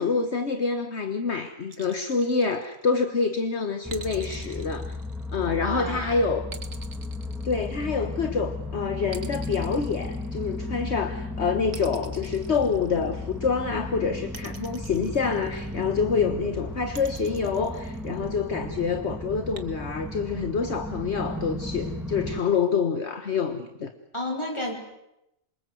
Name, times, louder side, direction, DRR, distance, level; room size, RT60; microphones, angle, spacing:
voice 1, 0.0-5.0 5.3-6.5 7.4-23.9, left 5 dB, 55° left, 8 dB, 1.6 m, -27 dB
sound 1, 1.7-3.1 3.9-5.7 6.5-8.2 9.1-10.8 11.7-13.4 14.3-15.9 16.9-18.4 19.5-19.6, right 5 dB, 75° right, 2.0 m, -45 dB
sound 2, 3.8-22.4, left 1 dB, ahead, 1.5 m, -35 dB
voice 2, 5.5-6.2 24.1-24.7, left 1 dB, 20° left, 2 dB, 6.0 m, -31 dB
27.0 x 25.0 x 7.8 m, 0.88 s
omnidirectional pair, 1.4 m